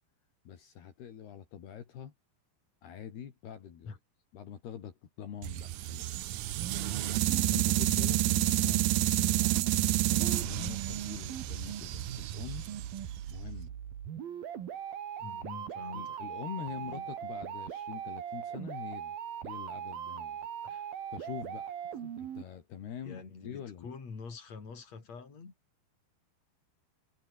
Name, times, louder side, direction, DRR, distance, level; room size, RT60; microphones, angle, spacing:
voice 1, 0.5-2.1 2.8-4.0 4.3-6.4 7.5-9.6 10.1-12.6 13.3-13.7 15.9-19.2 19.4-20.4 21.1-21.8 22.2-23.9, left 8 dB, 70° left, 4.7 m, -44 dB
sound 1, 5.4-13.5, right 15 dB, 75° right, 1.8 m, -30 dB
sound 2, 6.4-22.4, right 9 dB, 60° right, 4.0 m, -40 dB
voice 2, 15.2-16.2 16.7-17.1 20.6-20.9 22.0-22.1 23.0-25.5, left 5 dB, 40° left, 5.9 m, -46 dB
omnidirectional pair, 4.9 m